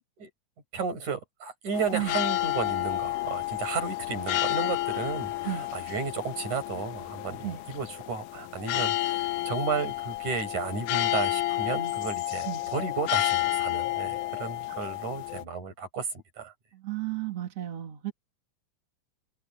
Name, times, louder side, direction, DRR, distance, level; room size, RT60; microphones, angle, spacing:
voice 1, 0.7-16.1 16.4-16.5, right 5 dB, 75° right, 8.6 m, -33 dB
sound 1, 1.7-15.4, left 17 dB, 85° left, 2.4 m, -30 dB
voice 2, 16.7-18.1, right 14 dB, 55° right, 3.5 m, -33 dB
omnidirectional pair, 3.5 m